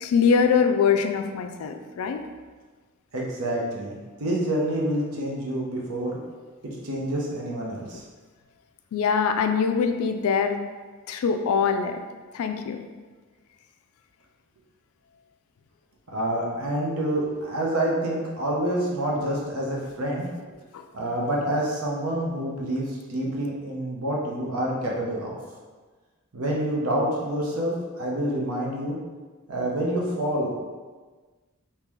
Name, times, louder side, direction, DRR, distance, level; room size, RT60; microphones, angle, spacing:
voice 1, 0.0-2.2 8.9-10.6 11.1-12.0 12.3-12.8 20.7-20.8, left 6 dB, 85° left, 7 dB, 0.3 m, -23 dB
voice 2, 3.1-6.2 6.6-8.0 16.1-20.3 20.9-25.4 26.3-29.0 29.5-30.6, right 1 dB, 90° right, -2 dB, 0.8 m, -27 dB
3.7 x 2.8 x 3.1 m, 1.4 s
head